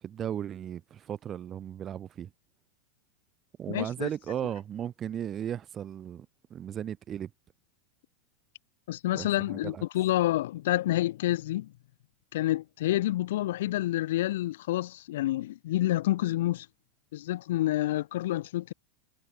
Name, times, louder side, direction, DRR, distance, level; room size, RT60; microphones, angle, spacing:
voice 1, 0.0-2.3 3.6-6.3 6.5-7.3 9.1-9.8, right 9 dB, 25° right, 0.4 m, -36 dB
voice 2, 3.7-4.1 8.9-11.7 12.3-16.7 17.1-18.7, left 15 dB, 75° left, 0.3 m, -28 dB
supercardioid pair, 150°, 0 cm